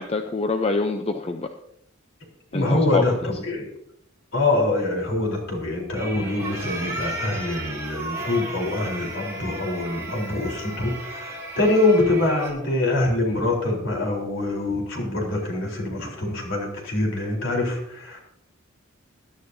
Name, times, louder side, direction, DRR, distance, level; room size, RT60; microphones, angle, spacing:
voice 1, 0.0-1.5 2.5-3.3, left 3 dB, 30° left, 6 dB, 0.6 m, -26 dB
voice 2, 2.5-3.1 3.4-3.7 4.3-18.2, left 2 dB, 60° left, -1 dB, 3.8 m, -24 dB
sound 1, 5.9-12.5, right 2 dB, 15° right, 3.0 m, -34 dB
20.0 x 11.5 x 2.7 m, 0.77 s
head